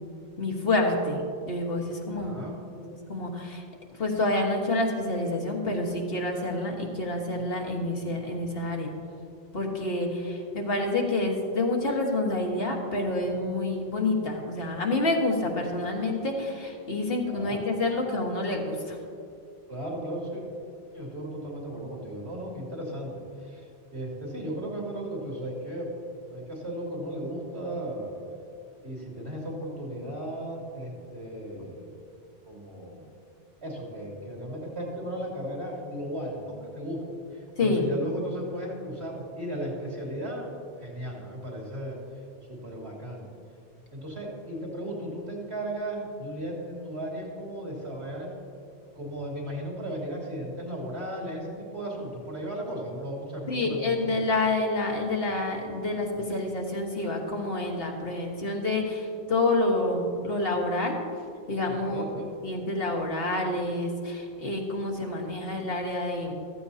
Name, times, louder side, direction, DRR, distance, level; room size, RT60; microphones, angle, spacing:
voice 1, 0.4-2.4 2.8-3.6 4.0-8.9 9.5-19.0 37.6-37.9 53.5-61.0 61.5-62.1 62.4-66.3, left 2 dB, 55° left, 1 dB, 1.7 m, -28 dB
voice 2, 2.1-2.5 17.2-17.6 19.7-20.4 20.9-23.1 23.5-23.6 23.9-25.9 26.3-28.1 28.8-31.9 32.5-33.0 33.6-37.0 37.6-40.5 40.8-42.0 42.5-43.3 43.9-48.3 48.9-53.9 61.6-62.3, right 1 dB, 65° right, -3 dB, 3.2 m, -35 dB
15.0 x 14.5 x 2.8 m, 2.3 s
omnidirectional pair, 1.2 m